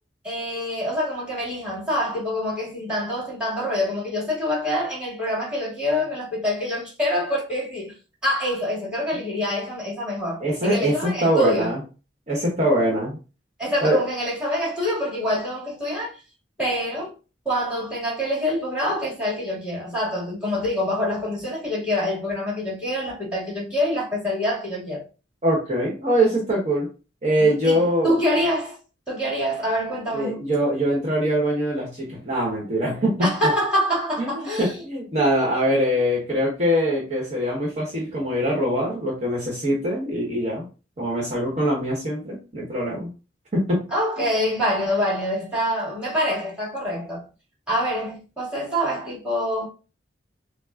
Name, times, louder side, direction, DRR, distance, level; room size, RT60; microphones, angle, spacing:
voice 1, 0.2-7.9 8.2-11.7 13.6-16.2 16.6-17.1 17.5-25.0 27.4-28.8 29.1-30.5 33.2-34.8 43.9-47.2 47.7-49.7, equal, 5° right, 2.0 m, -26 dB
voice 2, 10.4-11.8 12.3-13.2 13.8-14.0 25.4-26.9 27.2-28.1 30.1-33.3 34.2-40.7 41.0-43.1 43.5-43.9 44.2-44.3, equal, 40° right, 1.1 m, -23 dB
5.8 x 2.1 x 2.4 m
head